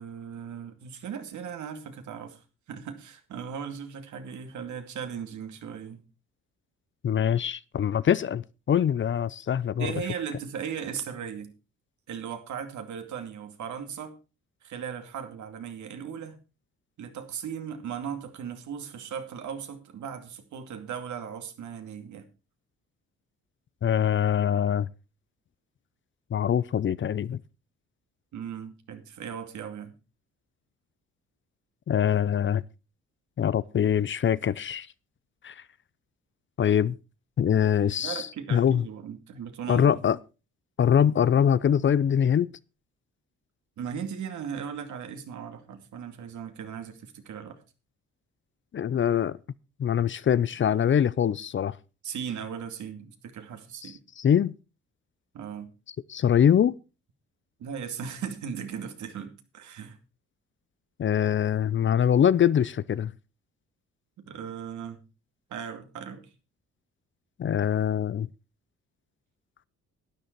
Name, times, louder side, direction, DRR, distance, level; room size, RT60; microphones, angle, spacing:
voice 1, 0.0-2.4 2.7-6.0 9.8-11.5 12.1-14.2 14.6-16.4 17.0-22.2 28.3-29.9 38.0-40.0 43.8-47.6 52.0-54.0 55.3-55.7 57.6-60.0 64.2-65.0 65.5-66.3, right 7 dB, 70° right, 2.4 m, -37 dB
voice 2, 7.0-9.9 23.8-24.9 26.3-27.4 31.9-32.6 33.4-34.9 35.4-35.5 36.6-37.0 37.4-38.8 39.7-40.2 40.8-42.5 48.7-49.4 49.8-51.7 53.8-54.5 56.1-56.7 61.0-63.1 67.4-68.3, left 9 dB, 40° left, 0.6 m, -23 dB
12.0 x 10.0 x 4.6 m
cardioid pair, 90°, 30 cm